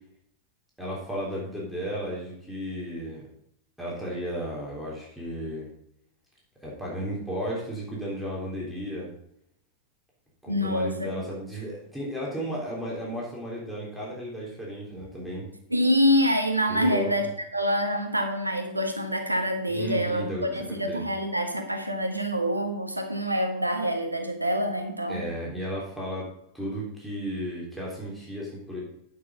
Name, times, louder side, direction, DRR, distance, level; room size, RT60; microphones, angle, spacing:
voice 1, 0.8-3.2 3.8-5.7 6.6-9.1 10.4-15.5 16.7-17.1 19.7-21.0 25.1-26.3 26.5-28.8, equal, ahead, -5 dB, 3.6 m, -34 dB
voice 2, 10.5-11.3 15.7-17.3 17.5-25.2, equal, 85° right, 5 dB, 1.3 m, -26 dB
9.5 x 6.1 x 5.4 m, 0.70 s
figure-of-eight pair, 90°, 0 cm